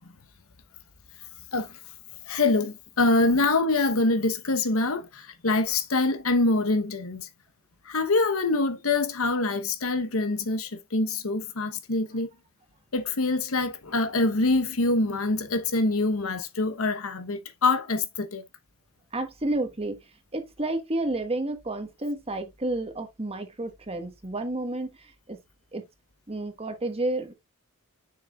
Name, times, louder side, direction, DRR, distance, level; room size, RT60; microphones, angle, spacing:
voice 1, 2.3-7.3 7.9-12.3 12.9-18.4, left 2 dB, 70° left, 1.0 m, -25 dB
voice 2, 19.1-20.0 20.3-24.9 25.3-25.4 25.7-25.8 26.3-27.3, right 2 dB, 30° right, 1.4 m, -30 dB
6.9 x 6.5 x 2.4 m
head